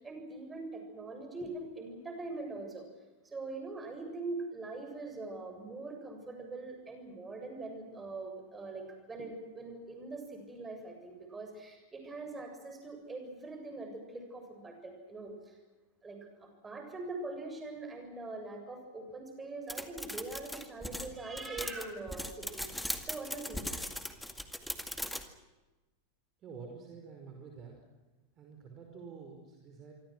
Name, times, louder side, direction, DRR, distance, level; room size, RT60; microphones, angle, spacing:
voice 1, 0.0-2.9 3.2-15.6 16.0-22.7 23.0-23.7, right 3 dB, 15° right, 4 dB, 7.4 m, -43 dB
sound 1, 19.7-25.3, left 1 dB, ahead, 2.1 m, -39 dB
voice 2, 26.4-27.8 28.4-29.9, right 5 dB, 30° right, 2 dB, 5.2 m, -48 dB
27.0 x 25.0 x 6.4 m, 1.1 s
figure-of-eight pair, 90°, 0 cm